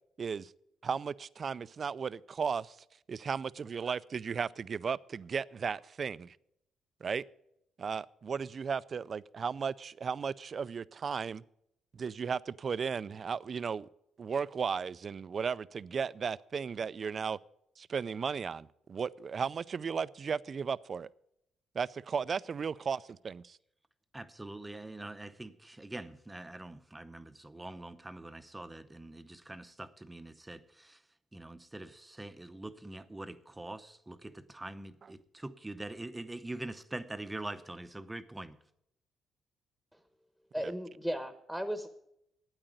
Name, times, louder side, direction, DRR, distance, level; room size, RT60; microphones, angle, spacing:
voice 1, 0.2-0.5 0.8-2.8 3.1-6.4 7.0-7.2 7.8-11.4 11.9-13.9 14.2-17.4 17.8-21.1 21.7-23.6 40.6-40.7, right 6 dB, 45° right, 0.4 m, -35 dB
voice 2, 24.1-31.0 31.3-38.6, right 2 dB, 15° right, 0.7 m, -44 dB
voice 3, 40.5-41.9, equal, ahead, 1.1 m, -35 dB
8.9 x 8.9 x 9.1 m
cardioid pair, 90°, 0 cm